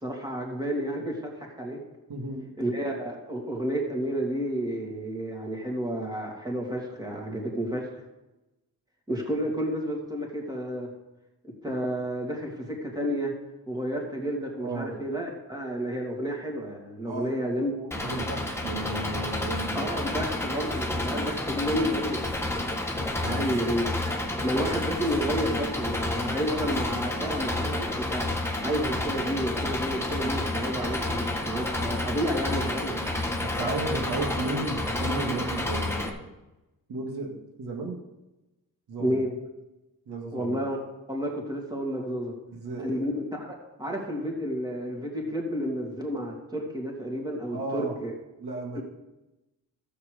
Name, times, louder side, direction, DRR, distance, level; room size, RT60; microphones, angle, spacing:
voice 1, 0.0-1.8 2.6-7.9 9.1-10.9 11.6-13.3 13.7-17.7 19.7-22.6 23.2-23.9 24.4-28.3 28.6-33.0 39.0-39.3 40.3-40.8 41.1-42.3 42.8-48.1 48.7-48.8, equal, 10° right, -1 dB, 2.9 m, -31 dB
voice 2, 2.1-2.5 14.6-15.0 17.0-19.8 20.1-20.3 23.0-23.6 26.5-26.6 33.4-36.3 36.9-38.0 38.9-39.2 40.1-40.6 42.5-43.1 47.5-47.9 48.4-48.8, right 2 dB, 85° right, 0 dB, 2.1 m, -34 dB
Engine, 17.9-36.1, left 1 dB, 5° left, 1.6 m, -30 dB
12.5 x 8.1 x 5.2 m, 1.0 s
cardioid pair, 95°, 37 cm